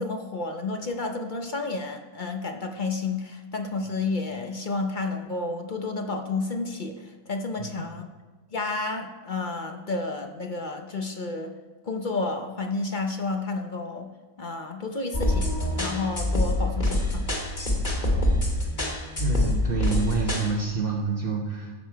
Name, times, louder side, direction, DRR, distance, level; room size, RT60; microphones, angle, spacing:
voice 1, 0.0-8.0 8.5-11.5 11.9-14.1 14.4-17.3, left 3 dB, 45° left, 5 dB, 0.6 m, -31 dB
sound 1, 15.1-20.5, left 1 dB, 30° left, 1.9 m, -25 dB
voice 2, 19.2-21.7, right 4 dB, 40° right, -2 dB, 1.1 m, -27 dB
14.5 x 6.6 x 4.6 m, 1.3 s
omnidirectional pair, 1.7 m